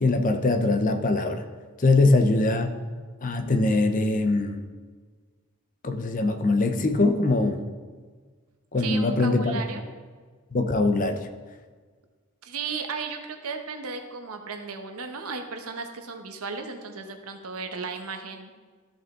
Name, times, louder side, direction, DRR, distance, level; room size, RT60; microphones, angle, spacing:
voice 1, 0.0-1.4 1.8-2.7 3.2-4.6 5.8-7.6 8.7-9.6 10.5-11.3, left 2 dB, 35° left, 7 dB, 0.6 m, -22 dB
voice 2, 8.8-9.8 12.4-18.5, right 4 dB, 80° right, 5 dB, 1.0 m, -35 dB
13.5 x 5.3 x 3.7 m, 1.5 s
head